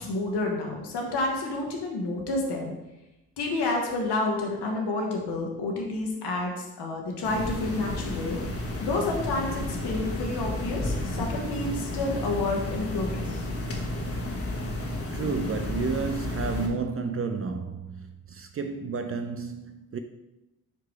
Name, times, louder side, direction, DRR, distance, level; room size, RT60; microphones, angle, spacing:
voice 1, 0.0-2.7 3.4-13.5, left 2 dB, 55° left, 1.8 m, -30 dB
sound 1, 7.2-16.7, left 1 dB, 30° left, 1.6 m, -32 dB
voice 2, 15.1-20.0, right 5 dB, 30° right, 0.5 m, -31 dB
9.4 x 4.7 x 3.3 m
figure-of-eight pair, 40°, 47 cm